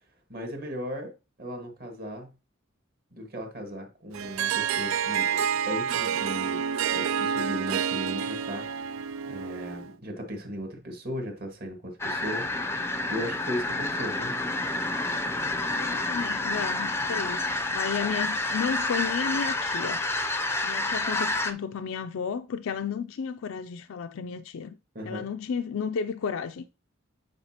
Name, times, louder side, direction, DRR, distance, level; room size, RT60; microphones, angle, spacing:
voice 1, 0.3-2.3 3.1-5.4 5.7-6.6 6.9-8.7 9.3-12.5 13.1-14.4 25.0-25.3, equal, 45° right, 1.9 m, -36 dB
Harp, 4.1-9.9, right 8 dB, 80° right, 0.3 m, -28 dB
sound 1, 12.0-21.5, left 2 dB, 10° left, 0.5 m, -29 dB
voice 2, 15.8-20.0 20.6-24.8 25.1-26.7, left 6 dB, 80° left, 0.4 m, -33 dB
8.7 x 4.9 x 2.9 m
head